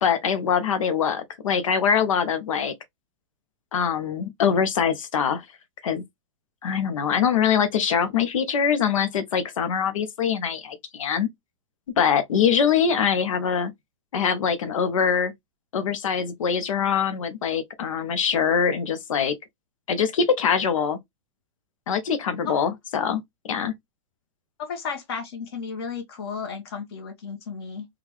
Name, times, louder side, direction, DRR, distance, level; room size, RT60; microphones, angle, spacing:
voice 1, 0.0-2.7 3.7-5.4 5.8-6.0 6.6-11.3 12.0-13.7 14.1-15.3 15.7-19.4 19.9-21.0 21.9-23.7, left 7 dB, 85° left, 0.8 m, -23 dB
voice 2, 24.6-27.9, left 5 dB, 50° left, 1.1 m, -33 dB
3.6 x 2.3 x 3.0 m
supercardioid pair, 170°, 17 cm